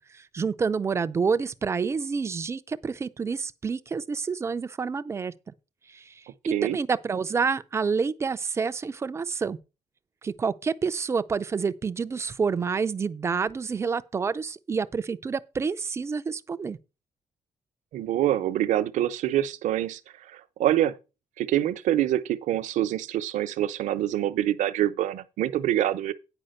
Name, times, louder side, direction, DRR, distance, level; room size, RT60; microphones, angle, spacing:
voice 1, 0.1-5.3 5.9-9.6 10.2-16.8, right 5 dB, 20° right, 0.4 m, -28 dB
voice 2, 17.9-20.0 20.3-21.0 21.4-26.1, right 12 dB, 70° right, 0.8 m, -25 dB
9.8 x 5.0 x 6.5 m
cardioid pair, 175°, 13 cm